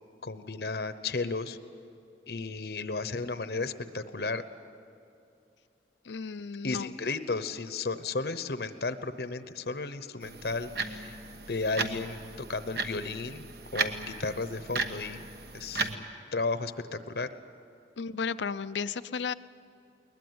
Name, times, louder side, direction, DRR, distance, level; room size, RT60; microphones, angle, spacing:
voice 1, 0.2-1.6 2.3-4.4 6.6-11.2 11.5-13.4 13.7-15.3 15.5-16.0 16.3-17.3, left 3 dB, 65° left, 11 dB, 0.9 m, -34 dB
voice 2, 6.0-6.9 18.0-19.3, left 5 dB, 85° left, 15 dB, 0.6 m, -34 dB
sound 1, 10.2-16.0, right 4 dB, 65° right, 1.2 m, -36 dB
21.0 x 20.5 x 9.5 m, 2.6 s
head